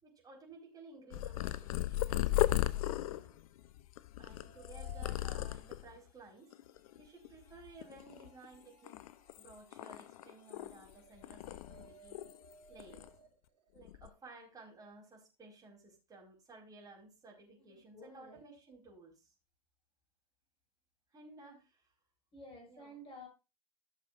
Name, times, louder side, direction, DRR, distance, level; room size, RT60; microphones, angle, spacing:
voice 1, 0.0-3.4 4.2-6.5 6.9-9.0 9.4-12.2 12.7-13.1 13.7-19.3 21.1-21.8 22.7-23.0, right 3 dB, 20° right, -2 dB, 4.7 m, -56 dB
Purr, 1.1-5.9 6.5-7.0 7.2-8.5 8.9-10.9 11.2-12.5 12.8-13.1 13.8-14.1, left 15 dB, 60° left, 0.6 m, -36 dB
sound 1, 4.2-14.4, right 7 dB, 65° right, 3.3 m, -63 dB
voice 2, 17.6-18.4 22.3-23.3, left 1 dB, 30° left, 0 dB, 6.0 m, -53 dB
15.0 x 6.8 x 2.5 m, 0.28 s
hypercardioid pair, 100°, 21 cm